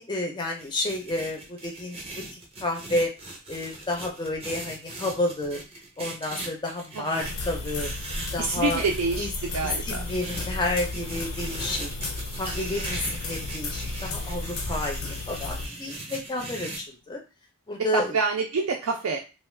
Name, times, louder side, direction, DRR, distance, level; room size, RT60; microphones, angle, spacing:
voice 1, 0.0-2.0 2.3-3.1 3.5-5.6 6.0-7.9 8.3-8.8 9.2-9.3 9.9-11.9 12.4-17.2 17.7-18.2, left 2 dB, 20° left, 1 dB, 0.4 m, -30 dB
sound 1, 0.6-9.0 9.7-16.8, right 2 dB, 25° right, 0.6 m, -39 dB
voice 2, 6.9-7.3 8.4-10.0 14.7-14.9 17.9-19.2, right 4 dB, 75° right, 1 dB, 0.4 m, -27 dB
sound 2, 7.2-15.7, left 3 dB, 75° left, 0.5 m, -34 dB
2.3 x 2.2 x 3.2 m, 0.30 s
head